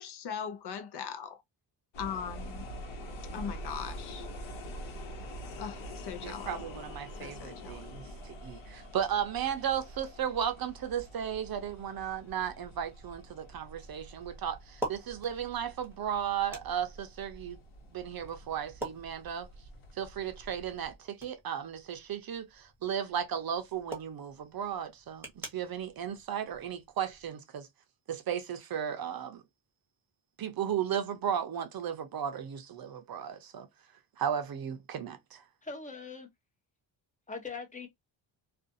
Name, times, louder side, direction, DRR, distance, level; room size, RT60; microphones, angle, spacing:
voice 1, 0.0-1.4 2.0-2.7 3.3-4.3 5.6-6.6 7.2-7.8, left 7 dB, 60° left, 0.6 m, -39 dB
sound 1, 1.9-20.9, equal, 90° left, 1.1 m, -46 dB
voice 2, 6.2-17.6 17.9-19.5 20.0-27.7 28.1-29.4 30.4-33.7 34.2-35.4, right 9 dB, 50° right, 0.6 m, -35 dB
sound 2, 12.1-27.3, right 1 dB, 5° right, 0.9 m, -48 dB
voice 3, 35.6-36.3 37.3-37.9, left 4 dB, 15° left, 0.6 m, -41 dB
2.4 x 2.4 x 2.6 m
wide cardioid pair, 155°, 46 cm